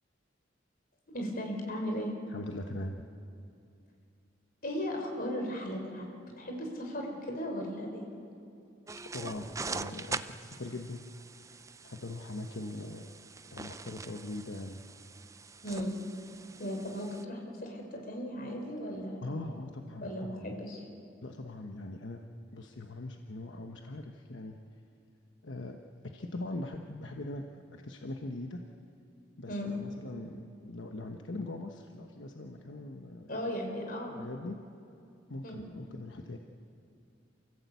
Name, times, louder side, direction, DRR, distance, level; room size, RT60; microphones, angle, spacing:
voice 1, 1.1-2.1 4.6-6.1 6.4-8.1 15.6-15.9 16.6-19.2 20.0-20.8 29.5-29.8 33.3-34.2 35.4-35.6, equal, 50° left, 2 dB, 4.2 m, -36 dB
voice 2, 2.3-3.1 9.1-11.0 11.8-13.1 13.5-14.8 19.2-20.6 21.2-22.2 22.5-24.5 25.4-25.8 26.0-27.5 27.7-28.6 29.4-33.3 34.1-34.6 35.3-36.4, left 2 dB, 80° left, 3 dB, 1.1 m, -41 dB
sound 1, 8.9-17.2, right 4 dB, 15° right, 0.5 m, -43 dB
28.5 x 16.0 x 8.3 m, 2.5 s
head